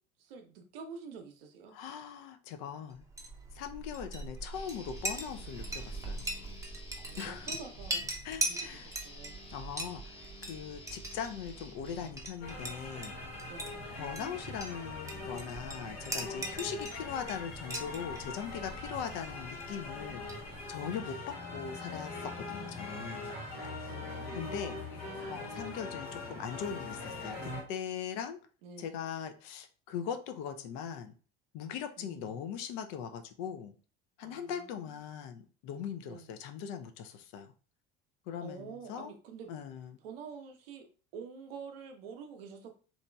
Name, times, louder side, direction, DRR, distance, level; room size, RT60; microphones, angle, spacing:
voice 1, 0.2-1.8 7.0-8.1 8.4-9.4 13.5-14.0 20.8-21.3 23.3-24.4 28.6-29.0 32.0-32.4 34.2-35.0 36.1-36.3 38.4-39.5 40.0-40.9 41.1-42.7, right 5 dB, 70° right, 5 dB, 0.7 m, -48 dB
voice 2, 1.7-3.1 3.5-6.2 7.2-7.5 8.2-8.9 9.5-13.2 14.0-23.3 24.3-24.8 25.3-28.4 28.8-31.1 31.5-33.7 34.2-37.5 38.3-39.1 39.5-40.0, left 8 dB, 60° left, 7 dB, 0.5 m, -40 dB
Chink clink, 3.0-20.8, right 2 dB, 10° right, 0.6 m, -41 dB
Guitar, 4.5-12.5, left 2 dB, 20° left, 0.8 m, -52 dB
sound 1, 12.4-27.6, left 3 dB, 75° left, 1.3 m, -42 dB
2.9 x 2.5 x 2.2 m, 0.37 s
hypercardioid pair, 70°, 30 cm